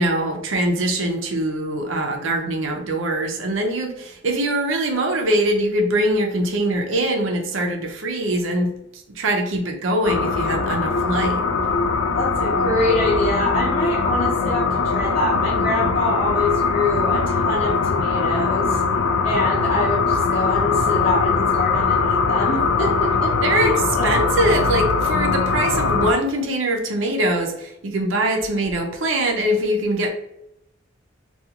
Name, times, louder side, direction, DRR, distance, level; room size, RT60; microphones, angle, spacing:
voice 1, 0.0-11.5 23.4-30.1, right 1 dB, 85° right, 2 dB, 0.5 m, -23 dB
sound 1, 10.0-26.1, left 4 dB, 85° left, 0.3 m, -21 dB
voice 2, 12.1-18.8 19.2-24.2, left 2 dB, 45° left, -6 dB, 0.6 m, -25 dB
2.4 x 2.3 x 2.7 m, 0.81 s
head